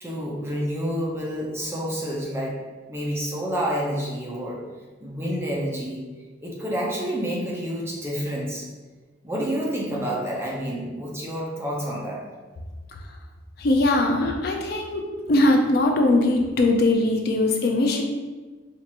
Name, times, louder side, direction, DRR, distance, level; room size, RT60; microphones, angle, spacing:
voice 1, 0.0-2.6 2.9-4.6 5.0-6.0 6.4-8.6 9.2-12.2, equal, 15° right, -4 dB, 0.6 m, -29 dB
voice 2, 13.6-15.0 15.3-18.0, left 2 dB, 50° left, 2 dB, 0.4 m, -20 dB
4.5 x 2.5 x 2.8 m, 1.3 s
head